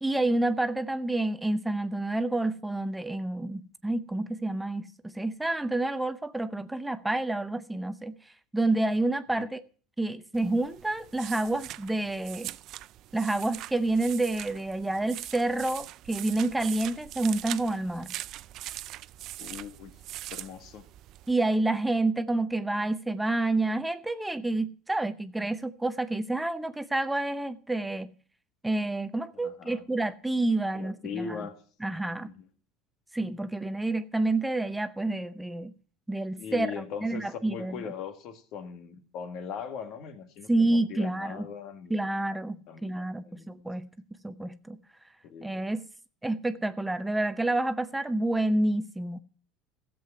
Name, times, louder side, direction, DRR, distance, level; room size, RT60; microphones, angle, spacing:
voice 1, 0.0-8.1 8.5-9.6 10.0-12.5 13.1-18.1 21.3-28.1 28.6-31.3 31.8-32.3 33.1-35.7 36.1-36.7 37.0-37.8 40.5-41.5 41.9-42.6 42.8-43.8 44.2-44.8 45.4-45.8 46.2-49.2, right 2 dB, 10° right, 0.7 m, -28 dB
sound 1, 10.3-21.3, right 14 dB, 55° right, 0.5 m, -42 dB
voice 2, 19.4-19.9 20.3-20.9 29.3-29.8 30.5-31.6 32.2-32.5 36.4-42.2 42.5-43.7 45.2-45.5, left 7 dB, 60° left, 2.0 m, -40 dB
14.0 x 7.8 x 5.6 m
supercardioid pair, 95°, 0 cm